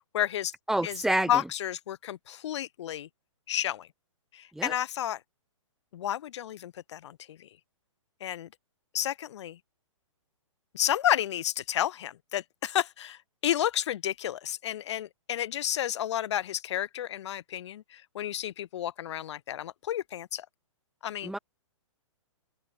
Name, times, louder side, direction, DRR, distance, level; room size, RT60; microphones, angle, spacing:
voice 1, 0.1-0.5 0.8-1.0 1.3-3.1 3.5-3.9 4.3-5.2 5.9-7.5 8.2-8.5 8.9-9.6 10.7-20.5 21.0-21.4, left 11 dB, 55° left, 4.6 m, -31 dB
voice 2, 0.7-1.4 4.5-4.7 21.2-21.4, right 1 dB, ahead, 2.3 m, -28 dB
open air
hypercardioid pair, 145°, 17 cm